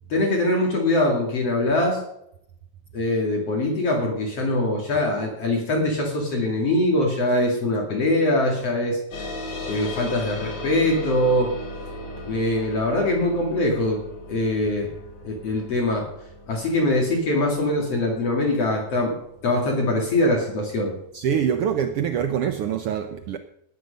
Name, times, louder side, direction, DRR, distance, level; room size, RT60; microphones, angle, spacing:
voice 1, 0.1-2.0 2.9-9.0 9.7-11.5 12.2-14.0 14.3-14.9 15.2-16.1 16.5-19.2 19.4-20.9, left 1 dB, 55° left, 3.3 m, -22 dB
sound 1, 9.1-20.0, left 1 dB, 85° left, 3.9 m, -37 dB
voice 2, 21.1-23.4, right 8 dB, 90° right, 1.2 m, -24 dB
18.5 x 8.0 x 5.2 m
omnidirectional pair, 3.4 m